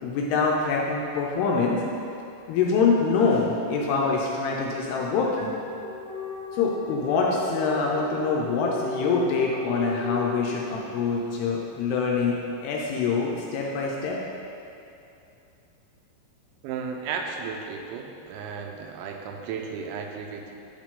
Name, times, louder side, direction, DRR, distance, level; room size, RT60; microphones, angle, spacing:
voice 1, 0.0-1.8 2.5-5.6 6.5-12.4 12.6-14.2, left 4 dB, 80° left, -2 dB, 2.5 m, -25 dB
sound 1, 5.4-11.1, left 2 dB, 50° left, 2.3 m, -36 dB
voice 2, 16.6-20.5, right 5 dB, 90° right, 2 dB, 3.0 m, -34 dB
10.0 x 4.9 x 3.7 m, 2.7 s
omnidirectional pair, 5.1 m